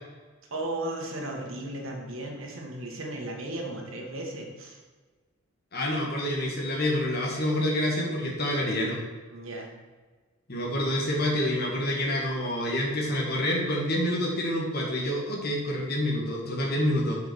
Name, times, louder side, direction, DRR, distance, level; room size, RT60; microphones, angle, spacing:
voice 1, 0.5-4.8 9.3-9.7, right 1 dB, 65° right, 0 dB, 1.9 m, -35 dB
voice 2, 5.7-9.0 10.5-17.2, left 1 dB, 45° left, -3 dB, 1.8 m, -27 dB
7.7 x 5.6 x 6.3 m, 1.4 s
head